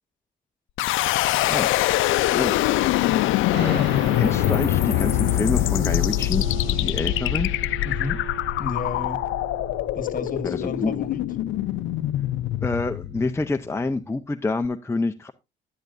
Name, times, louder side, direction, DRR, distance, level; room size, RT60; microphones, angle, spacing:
sound 1, 0.8-13.7, left 15 dB, 90° left, 0.5 m, -23 dB
voice 1, 3.5-3.8 4.1-7.5 10.4-10.9 12.6-15.3, left 3 dB, 15° left, 0.7 m, -27 dB
sound 2, 3.5-14.0, right 9 dB, 60° right, 1.9 m, -39 dB
voice 2, 7.8-8.3 8.6-9.2 9.9-11.2, left 4 dB, 45° left, 1.6 m, -32 dB
11.5 x 10.5 x 2.6 m
cardioid pair, 90°, 20 cm